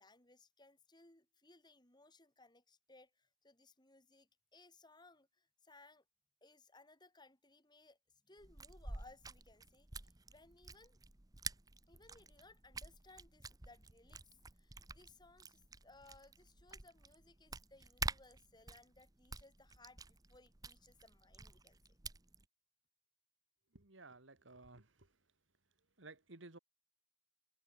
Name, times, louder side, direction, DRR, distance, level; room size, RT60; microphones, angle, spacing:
voice 1, 0.0-6.0 6.4-8.0 8.2-11.0 11.9-22.0, left 2 dB, 20° left, 5.2 m, -64 dB
sound 1, 8.4-22.5, right 4 dB, 20° right, 1.0 m, -49 dB
voice 2, 23.7-25.1 26.0-26.6, right 2 dB, 80° right, 2.4 m, -56 dB
head